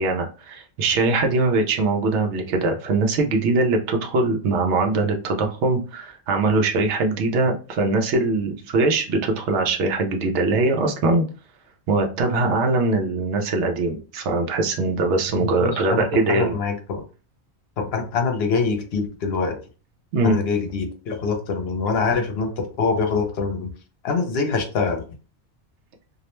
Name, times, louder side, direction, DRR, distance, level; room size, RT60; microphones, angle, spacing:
voice 1, 0.0-11.2 11.9-16.6 20.1-20.4, right 3 dB, 90° right, 3 dB, 0.9 m, -22 dB
voice 2, 15.4-17.0 17.8-19.6 20.2-23.7 24.0-25.0, left 4 dB, 70° left, 4 dB, 0.8 m, -24 dB
2.5 x 2.1 x 2.9 m, 0.35 s
omnidirectional pair, 1.1 m